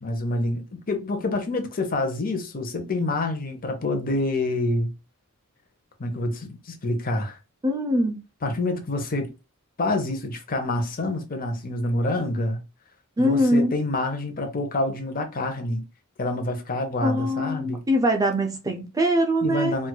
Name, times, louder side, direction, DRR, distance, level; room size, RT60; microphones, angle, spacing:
voice 1, 0.0-4.9 6.0-7.4 8.4-9.3 9.8-12.6 13.2-15.8 16.2-17.8 19.4-19.9, left 2 dB, 40° left, 0.8 m, -27 dB
voice 2, 7.6-8.2 13.2-13.7 17.0-19.7, equal, 15° right, 0.5 m, -22 dB
4.4 x 2.5 x 2.3 m
head